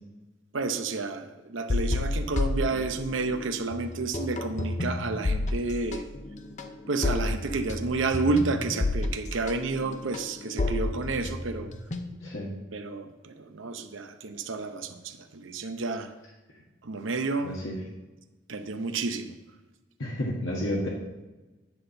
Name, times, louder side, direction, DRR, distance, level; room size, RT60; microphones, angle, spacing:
voice 1, 0.5-6.0 6.9-11.7 12.7-16.1 16.8-17.6 18.5-19.3, right 3 dB, 80° right, 8 dB, 0.8 m, -30 dB
sound 1, 1.7-3.4 3.7-12.4, left 2 dB, 35° left, 0.6 m, -30 dB
voice 2, 12.2-12.5 17.4-17.8 20.0-20.9, left 1 dB, 80° left, -4 dB, 1.5 m, -31 dB
10.0 x 4.3 x 6.5 m, 1.1 s
head